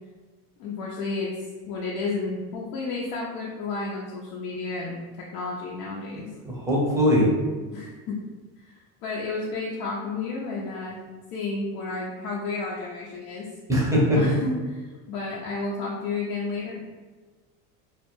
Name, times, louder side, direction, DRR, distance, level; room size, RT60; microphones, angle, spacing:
voice 1, 0.6-1.3 1.7-6.3 7.7-8.2 8.6-11.0 11.3-13.5 14.1-14.5 14.8-16.8, left 3 dB, 65° left, -4 dB, 0.6 m, -31 dB
voice 2, 6.1-7.3 13.7-14.2, equal, 10° right, -4 dB, 0.7 m, -22 dB
2.3 x 2.1 x 3.0 m, 1.3 s
supercardioid pair, 115°, 39 cm